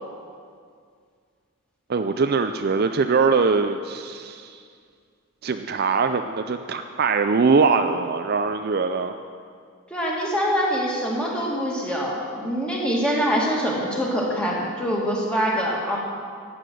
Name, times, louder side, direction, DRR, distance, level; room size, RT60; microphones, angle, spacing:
voice 1, 1.9-4.6 5.4-9.1, right 4 dB, 45° right, 7 dB, 0.4 m, -22 dB
voice 2, 9.9-16.0, equal, 5° left, -4 dB, 2.2 m, -24 dB
14.5 x 9.7 x 6.2 m, 2.2 s
head